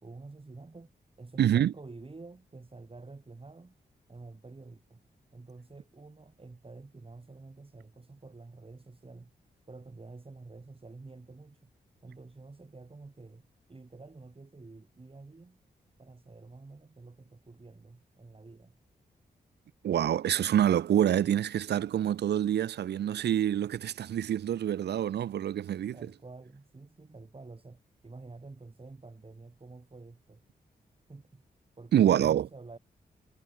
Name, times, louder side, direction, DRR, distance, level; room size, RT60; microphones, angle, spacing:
voice 1, 0.0-3.8 4.1-5.1 5.3-9.3 9.7-11.7 12.0-15.6 16.0-18.8 25.9-30.4 31.1-31.4 31.8-32.8, right 3 dB, 30° right, 2.6 m, -49 dB
voice 2, 1.4-1.7 19.8-26.0 31.9-32.5, right 10 dB, 75° right, 0.6 m, -26 dB
supercardioid pair, 45°, 18 cm